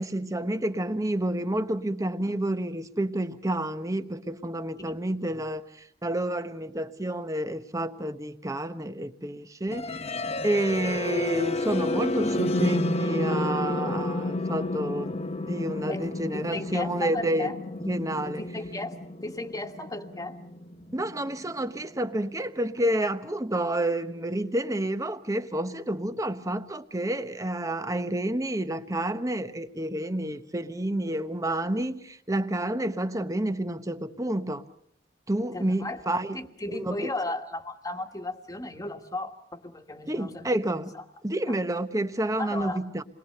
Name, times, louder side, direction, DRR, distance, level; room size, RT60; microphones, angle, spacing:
voice 1, 0.0-10.2 10.4-17.5 17.8-18.4 20.9-34.6 35.3-36.4 36.7-37.1 40.1-40.9 41.2-43.0, right 1 dB, 20° right, 1.0 m, -29 dB
sound 1, 9.7-21.6, left 1 dB, 35° left, 1.0 m, -30 dB
voice 2, 15.9-17.6 18.2-19.0 19.2-20.4 35.5-36.0 36.3-40.6 41.0-41.1 41.5-41.6 42.4-42.8, left 2 dB, 20° left, 1.6 m, -35 dB
28.5 x 21.5 x 6.7 m
head